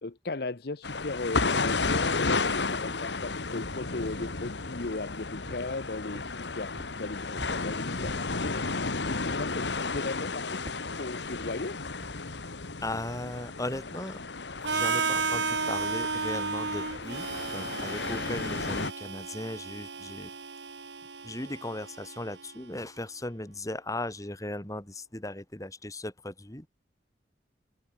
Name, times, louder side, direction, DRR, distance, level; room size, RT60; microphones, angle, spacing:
voice 1, 0.0-11.8, left 3 dB, 60° left, 0.9 m, -37 dB
sound 1, 0.8-18.9, left 3 dB, 80° left, 1.7 m, -33 dB
sound 2, 2.9-3.2 3.6-3.8 4.2-5.1 5.4-5.7 6.1-6.4 6.8-7.0 7.4-7.6 8.0-8.3 8.6-8.9 9.2-9.6 9.9-10.1 10.7-10.9 11.3-11.5 12.0-12.2, equal, 30° right, 2.5 m, -46 dB
voice 2, 12.8-14.2 14.7-20.3 21.2-26.7, left 1 dB, 20° left, 2.7 m, -37 dB
Harmonica, 14.6-22.5, right 5 dB, 80° right, 2.0 m, -33 dB
head